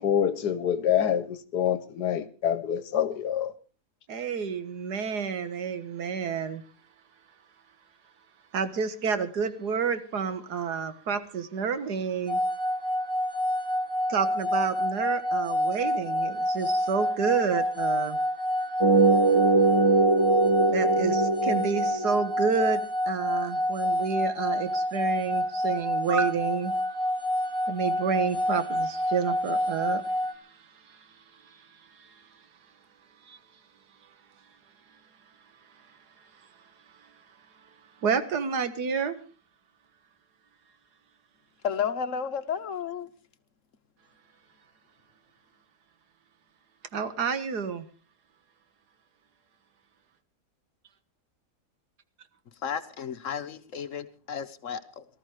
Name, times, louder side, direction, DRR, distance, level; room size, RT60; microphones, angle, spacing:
voice 1, 0.0-3.5, left 9 dB, 80° left, 1.5 m, -26 dB
voice 2, 4.1-6.6 8.5-12.4 14.1-18.2 20.7-22.8 23.1-26.7 27.7-30.0 33.3-33.4 38.0-39.2 46.9-47.9, right 6 dB, 75° right, 1.9 m, -29 dB
sound 1, 12.3-30.3, left 1 dB, 5° left, 1.1 m, -28 dB
sound 2, 18.8-22.3, right 3 dB, 20° right, 1.2 m, -22 dB
voice 3, 41.6-43.1 52.6-55.0, left 7 dB, 55° left, 1.4 m, -32 dB
18.5 x 13.5 x 4.9 m
omnidirectional pair, 1.7 m